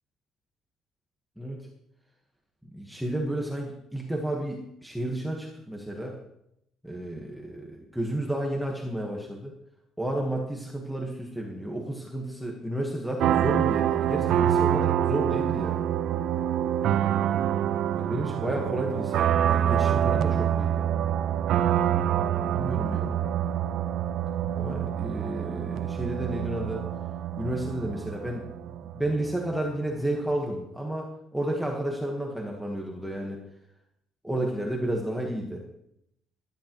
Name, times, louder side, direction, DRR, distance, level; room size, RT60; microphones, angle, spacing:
voice 1, 2.7-6.2 6.8-9.5 10.0-15.8 17.9-20.9 22.5-23.2 24.5-26.8 27.4-28.5 28.9-33.4 34.2-35.6, right 1 dB, ahead, -1 dB, 1.2 m, -31 dB
sound 1, 13.2-29.7, right 10 dB, 60° right, 0.5 m, -26 dB
16.5 x 12.5 x 3.0 m, 0.79 s
cardioid pair, 170°, 0 cm